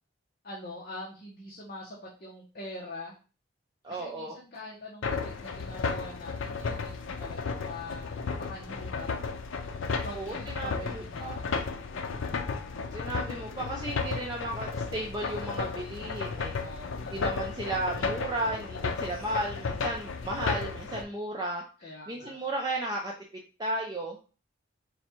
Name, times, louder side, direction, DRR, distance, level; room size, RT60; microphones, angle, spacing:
voice 1, 0.4-3.2 3.9-9.1 10.0-11.4 16.5-17.3 21.8-22.4, left 1 dB, 45° left, -4 dB, 0.9 m, -44 dB
voice 2, 3.8-4.4 10.1-11.4 12.9-16.5 17.1-21.6 22.1-23.1 23.6-24.2, right 1 dB, 20° right, -1 dB, 0.5 m, -34 dB
sound 1, 5.0-21.0, left 4 dB, 80° left, 0.5 m, -34 dB
4.1 x 2.3 x 4.3 m, 0.34 s
head